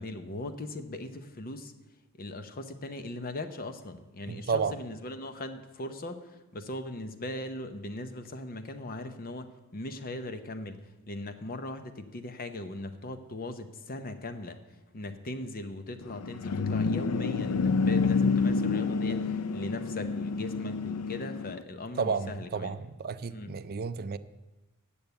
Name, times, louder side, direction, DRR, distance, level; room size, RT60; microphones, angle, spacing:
voice 1, 0.0-1.7 2.2-10.8 11.1-14.6 14.9-22.7 23.3-23.5, left 2 dB, 40° left, 9 dB, 0.8 m, -39 dB
voice 2, 4.3-4.8 22.0-24.2, right 5 dB, 45° right, 12 dB, 0.4 m, -32 dB
sound 1, 16.0-21.6, left 4 dB, 80° left, 0.5 m, -28 dB
8.8 x 7.0 x 8.0 m, 1.1 s
head